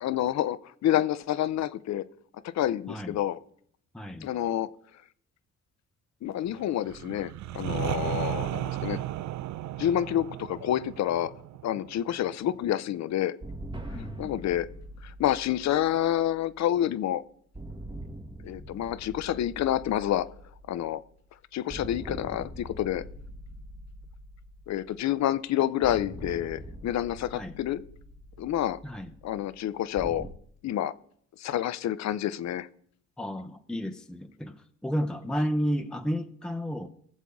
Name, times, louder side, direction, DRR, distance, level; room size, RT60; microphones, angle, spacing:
voice 1, 0.0-2.0 2.5-3.4 4.2-4.7 6.2-9.0 9.8-11.3 11.6-13.4 13.9-14.7 15.0-17.2 18.4-20.3 20.7-21.0 21.5-23.0 24.7-27.8 28.4-28.8 29.2-30.3 30.6-30.9 31.4-32.7, left 12 dB, 65° left, 0.6 m, -28 dB
voice 2, 2.9-3.2 3.9-4.3 13.9-14.3 27.3-27.5 28.8-29.1 33.2-36.9, equal, 5° left, 0.7 m, -32 dB
sound 1, 6.8-12.6, right 14 dB, 70° right, 0.5 m, -34 dB
sound 2, 13.4-17.0 17.5-21.3 21.7-25.3 25.8-30.3, right 1 dB, 15° right, 1.1 m, -43 dB
19.0 x 7.3 x 3.6 m
cardioid pair, 90°, 30 cm